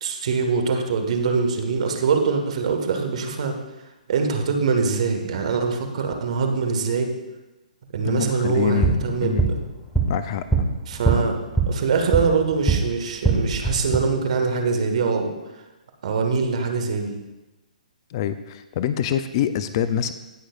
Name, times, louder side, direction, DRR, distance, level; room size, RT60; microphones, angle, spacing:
voice 1, 0.0-3.6 4.1-7.1 7.9-9.6 10.9-11.4 11.7-15.3 16.0-17.1, right 5 dB, 50° right, 4 dB, 1.5 m, -23 dB
voice 2, 8.0-9.5 10.1-10.5 18.1-20.1, left 9 dB, 35° left, 12 dB, 0.5 m, -25 dB
sound 1, 8.7-12.8 13.1-14.0, right 4 dB, ahead, 1.3 m, -23 dB
18.0 x 6.2 x 2.5 m, 1.0 s
figure-of-eight pair, 135°, 5 cm